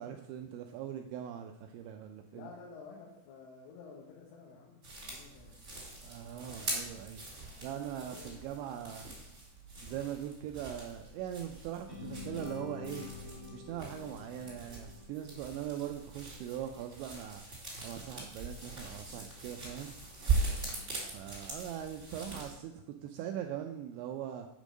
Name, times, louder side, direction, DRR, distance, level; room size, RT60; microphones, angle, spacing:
voice 1, 0.0-2.5 6.0-7.2 7.6-9.1 9.8-13.1 13.5-17.4 17.8-19.9 21.1-24.5, right 10 dB, 85° right, 5 dB, 2.6 m, -41 dB
voice 2, 2.3-6.1 7.5-8.4 20.3-21.2, left 4 dB, 80° left, -3 dB, 3.7 m, -53 dB
sound 1, 4.8-22.6, right 3 dB, 20° right, 2.2 m, -41 dB
sound 2, 11.9-16.0, left 5 dB, 55° left, 0.7 m, -47 dB
8.4 x 5.3 x 6.2 m, 0.85 s
omnidirectional pair, 5.7 m